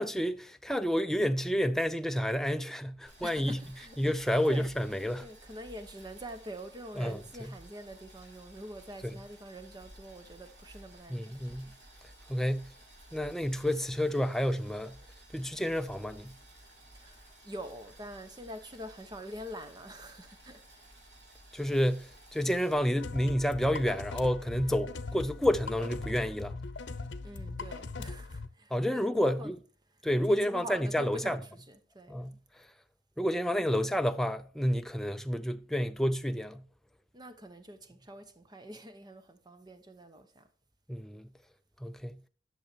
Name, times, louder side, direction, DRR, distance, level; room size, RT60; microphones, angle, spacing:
voice 1, 0.0-3.6 4.0-5.2 7.0-7.2 9.0-9.1 11.1-11.7 12.3-12.7 13.1-15.0 15.3-16.3 21.5-26.5 28.7-29.6 30.0-31.4 32.1-32.4 33.2-36.6 40.9-41.3 41.8-42.2, equal, ahead, 0.4 m, -30 dB
Boiling, 3.1-22.7, right 1 dB, 70° right, 3.7 m, -55 dB
voice 2, 3.2-4.0 4.2-4.7 5.2-11.6 16.9-20.9 27.2-29.5 30.3-32.2 37.1-40.5, equal, 20° right, 0.9 m, -45 dB
sound 1, 23.0-28.5, left 3 dB, 80° left, 0.8 m, -40 dB
11.0 x 6.6 x 4.4 m
head